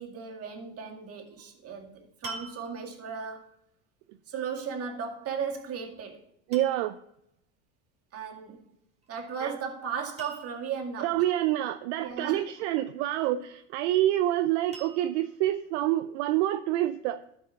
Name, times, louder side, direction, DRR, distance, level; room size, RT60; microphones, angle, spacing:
voice 1, 0.0-3.5 4.3-6.3 8.1-8.7 9.1-11.2 12.0-12.5 13.3-13.4, right 6 dB, 40° right, 1 dB, 2.2 m, -36 dB
sound 1, 1.3-1.5 2.2-3.1 5.5-5.9 6.5-7.0 9.0-9.4 9.7-9.8 10.2-10.9 13.1-13.8 14.7-15.4 16.1-16.2, right 2 dB, 20° right, 2.9 m, -46 dB
voice 2, 6.5-7.0 9.4-9.6 11.0-17.2, right 14 dB, 70° right, 9 dB, 0.6 m, -27 dB
12.5 x 5.5 x 4.0 m, 0.75 s
supercardioid pair, 100°, 36 cm